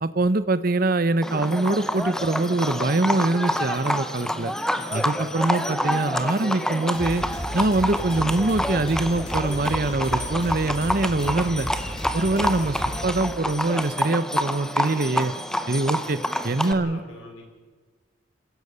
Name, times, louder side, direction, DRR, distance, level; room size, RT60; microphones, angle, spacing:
voice 1, 0.0-4.5 4.9-7.2 7.5-11.7 12.1-12.8 13.0-15.3 15.7-16.2 16.4-17.0, right 2 dB, 45° right, 14 dB, 0.8 m, -23 dB
Livestock farm animals working animals, 1.2-16.7, equal, 5° left, 0.8 m, -28 dB
sound 1, 6.9-13.1, equal, 30° left, 3.4 m, -34 dB
voice 2, 16.6-17.4, left 1 dB, 85° left, 2 dB, 5.0 m, -42 dB
28.0 x 16.0 x 6.8 m, 1.4 s
head